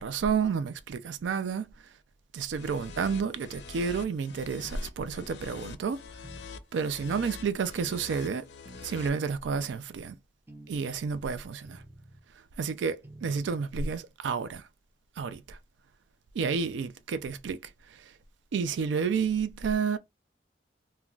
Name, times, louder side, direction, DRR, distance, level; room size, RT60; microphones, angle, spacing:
voice 1, 0.0-1.7 2.3-6.0 6.7-8.5 8.8-10.2 10.7-11.8 12.6-14.7 15.2-15.6 16.3-18.1 18.5-20.0, right 6 dB, 90° right, 0.4 m, -30 dB
sound 1, 2.5-9.1, left 4 dB, 75° left, 0.4 m, -45 dB
sound 2, 4.6-4.8 5.4-5.7 6.2-6.5 7.0-7.3 7.8-8.1 8.7-8.9 9.5-9.8 10.5-10.8 11.6-12.3 13.0-13.7, right 1 dB, 15° right, 0.4 m, -49 dB
2.3 x 2.2 x 3.7 m
head